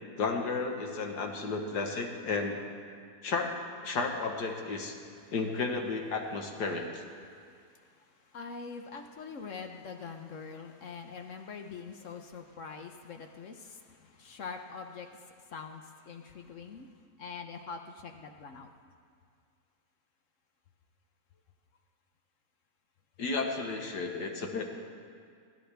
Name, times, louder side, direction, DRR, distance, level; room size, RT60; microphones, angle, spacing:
voice 1, 0.2-2.6 3.2-3.6 3.8-5.0 5.3-7.0 23.2-24.6, left 4 dB, 75° left, 3 dB, 1.8 m, -33 dB
voice 2, 7.3-16.9 17.2-18.7, left 5 dB, 55° left, 5 dB, 1.0 m, -44 dB
28.0 x 10.5 x 3.4 m, 2.2 s
omnidirectional pair, 1.8 m